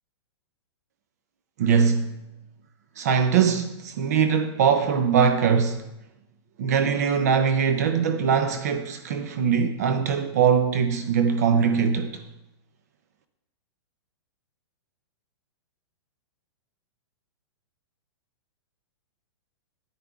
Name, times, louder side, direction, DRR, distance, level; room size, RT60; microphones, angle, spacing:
voice 1, 1.6-2.2 3.0-5.8 6.6-12.2, right 6 dB, 35° right, 0.5 m, -22 dB
10.0 x 9.6 x 3.5 m
hypercardioid pair, 175°, 15 cm